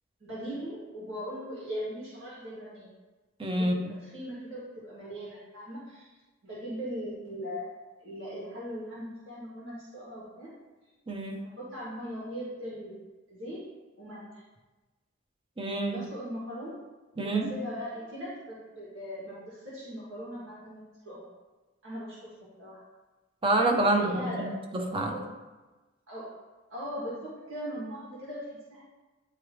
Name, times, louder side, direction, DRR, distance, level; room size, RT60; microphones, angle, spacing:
voice 1, 0.2-2.9 3.5-3.7 4.0-6.1 6.4-10.5 11.6-13.0 13.3-13.6 14.0-14.4 15.9-16.8 17.2-20.8 21.1-21.2 21.8-22.3 22.6-22.8 23.8-24.6 25.1-25.2 26.1-26.3 26.7-28.8, equal, 70° right, -8 dB, 2.0 m, -39 dB
voice 2, 3.4-3.9 11.1-11.4 15.6-16.0 17.2-17.5 23.4-25.1, right 2 dB, 25° right, 3 dB, 0.7 m, -27 dB
9.8 x 3.3 x 3.1 m, 1.2 s
head